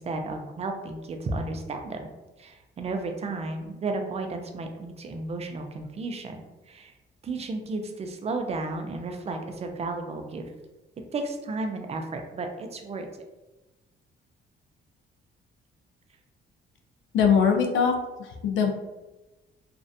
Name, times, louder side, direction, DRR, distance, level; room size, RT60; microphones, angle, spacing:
voice 1, 0.0-2.1 2.4-6.4 6.7-6.9 7.2-10.5 11.1-13.1, right 3 dB, 30° right, 4 dB, 0.4 m, -33 dB
voice 2, 17.1-17.9 18.2-18.7, left 6 dB, 75° left, 3 dB, 0.5 m, -21 dB
2.5 x 2.0 x 2.5 m, 1.1 s
cardioid pair, 90°, 20 cm